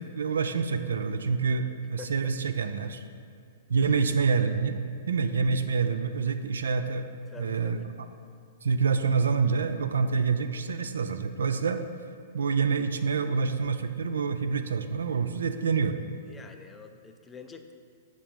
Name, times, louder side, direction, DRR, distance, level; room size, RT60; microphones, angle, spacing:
voice 1, 0.0-3.0 3.7-4.8 5.1-7.1 7.4-8.1 8.6-11.8 12.3-16.0, right 5 dB, 85° right, 9 dB, 0.3 m, -27 dB
voice 2, 2.0-2.3 3.8-4.0 7.3-7.9 16.3-17.7, left 5 dB, 15° left, 6 dB, 0.4 m, -46 dB
5.9 x 3.1 x 5.1 m, 2.4 s
hypercardioid pair, 120°, 0 cm